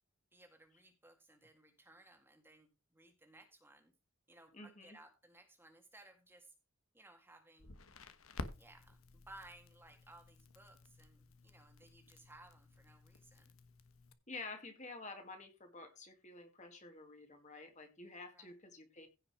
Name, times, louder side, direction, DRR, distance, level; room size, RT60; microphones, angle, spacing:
voice 1, 0.3-3.9 4.3-6.5 6.9-7.8 8.6-13.6 18.3-18.5, right 2 dB, 10° right, 5 dB, 1.9 m, -60 dB
voice 2, 4.5-5.0 14.3-19.1, left 3 dB, 35° left, 6 dB, 2.3 m, -50 dB
Crackle, 7.6-14.1, left 2 dB, 75° left, 1.3 m, -52 dB
16.0 x 5.6 x 4.9 m, 0.27 s
head